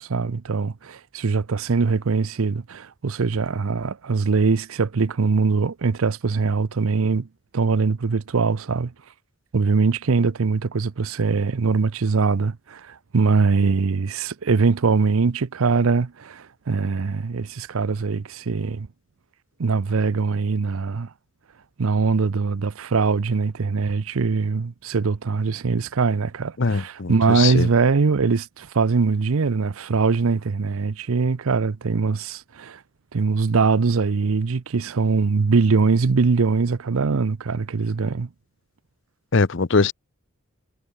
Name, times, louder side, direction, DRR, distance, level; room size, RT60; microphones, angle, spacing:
voice 1, 0.0-7.3 7.5-8.9 9.5-18.9 19.6-21.1 21.8-32.8 33.1-38.3, right 4 dB, 70° right, 0.6 m, -22 dB
voice 2, 26.6-27.7 39.3-39.9, left 4 dB, 55° left, 0.7 m, -21 dB
head